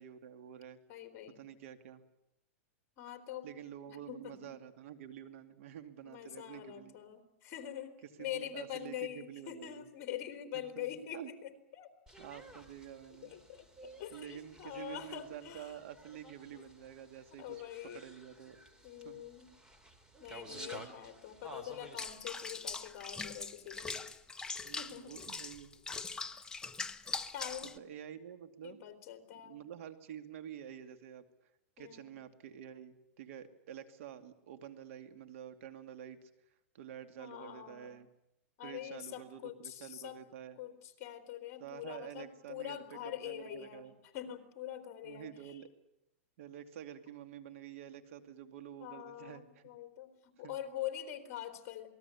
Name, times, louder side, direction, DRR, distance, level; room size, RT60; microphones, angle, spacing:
voice 1, 0.0-0.8 1.4-2.0 3.4-7.0 8.2-9.8 10.8-10.9 11.1-11.3 12.2-13.4 14.1-17.6 17.9-18.6 19.0-19.2 20.5-20.9 24.6-25.8 27.7-28.8 29.4-31.3 31.8-36.3 36.7-38.1 38.6-40.6 41.6-43.9 45.0-45.7 46.4-49.6 50.4-50.5, right 9 dB, 65° right, 9 dB, 2.5 m, -49 dB
voice 2, 0.9-1.5 3.0-3.5 3.9-4.6 6.0-11.9 13.1-15.7 16.5-16.7 17.4-18.0 18.5-18.6 18.8-19.5 20.2-24.0 24.8-25.2 27.3-27.9 28.6-29.6 31.8-32.1 37.2-38.0 38.6-40.2 40.6-45.6 48.8-51.9, left 11 dB, 40° left, 7 dB, 3.7 m, -44 dB
sound 1, 12.1-22.1, right 1 dB, 10° right, 2.6 m, -53 dB
Water / Bathtub (filling or washing), 22.0-27.8, left 4 dB, 10° left, 1.0 m, -42 dB
27.5 x 20.0 x 8.5 m, 0.84 s
hypercardioid pair, 145°, 8 cm